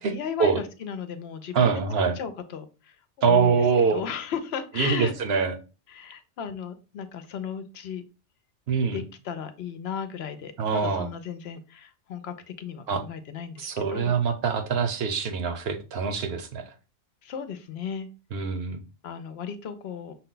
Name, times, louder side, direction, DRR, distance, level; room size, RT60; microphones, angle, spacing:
voice 1, 0.0-1.8 2.2-3.5 3.9-5.1 5.9-8.0 8.9-14.1 17.2-18.1 19.0-20.1, left 7 dB, 65° left, 9 dB, 0.8 m, -35 dB
voice 2, 1.5-2.2 3.2-4.0 4.8-5.5 8.7-9.0 10.6-11.1 12.9-13.0 13.6-16.7 18.3-18.8, right 5 dB, 60° right, 7 dB, 0.9 m, -24 dB
5.9 x 2.2 x 3.8 m, 0.32 s
omnidirectional pair, 1.2 m